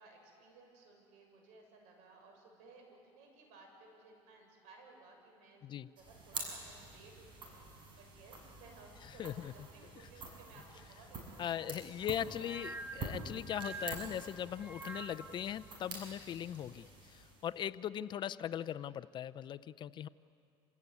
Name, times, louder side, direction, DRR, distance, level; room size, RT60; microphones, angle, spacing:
voice 1, 0.0-5.7 6.0-12.6, right 3 dB, 75° right, 2 dB, 7.0 m, -59 dB
sound 1, 6.0-17.6, right 3 dB, 40° right, 6.9 m, -48 dB
voice 2, 9.2-9.5 10.0-10.1 11.4-20.1, left 10 dB, 40° left, 15 dB, 0.5 m, -40 dB
sound 2, 12.4-15.5, right 3 dB, 15° right, 1.6 m, -46 dB
27.5 x 17.0 x 9.5 m, 2.6 s
supercardioid pair, 120°, 12 cm